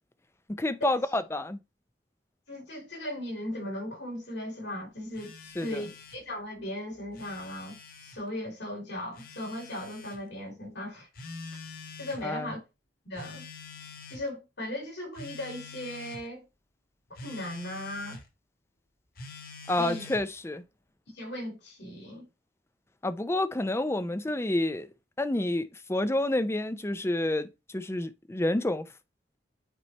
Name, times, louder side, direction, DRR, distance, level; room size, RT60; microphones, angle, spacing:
voice 1, 0.5-1.6 5.6-5.8 12.2-12.5 19.7-20.6 23.0-24.9 25.2-28.9, left 1 dB, 15° left, 0.5 m, -29 dB
voice 2, 2.5-5.3 5.6-11.1 12.0-12.6 13.0-13.4 14.1-16.4 17.1-18.2 19.7-20.0 21.1-22.3, left 1 dB, 75° left, 4.5 m, -37 dB
Telephone, 5.1-6.2 7.0-8.2 9.1-10.2 11.2-12.3 13.2-14.3 15.1-16.2 17.2-18.3 19.2-20.3, left 4 dB, 55° left, 1.2 m, -45 dB
9.1 x 3.2 x 4.2 m
head